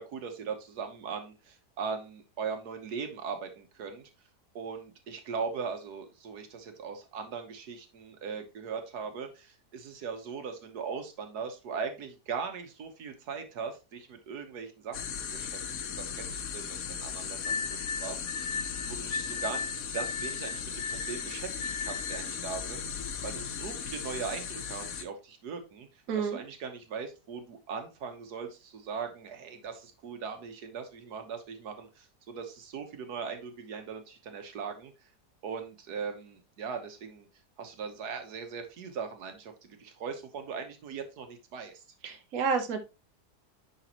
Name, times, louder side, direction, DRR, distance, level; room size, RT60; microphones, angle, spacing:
voice 1, 0.0-4.1 4.5-18.2 18.8-25.9 26.1-34.9 35.4-37.3 37.6-41.8, right 5 dB, 80° right, 6 dB, 1.6 m, -39 dB
sound 1, 14.9-25.0, left 7 dB, 65° left, 1.2 m, -37 dB
sound 2, 17.4-22.3, left 5 dB, 85° left, 1.5 m, -36 dB
voice 2, 26.1-26.4 42.0-42.8, right 5 dB, 65° right, 5 dB, 1.3 m, -30 dB
10.0 x 4.0 x 2.9 m, 0.28 s
omnidirectional pair, 1.7 m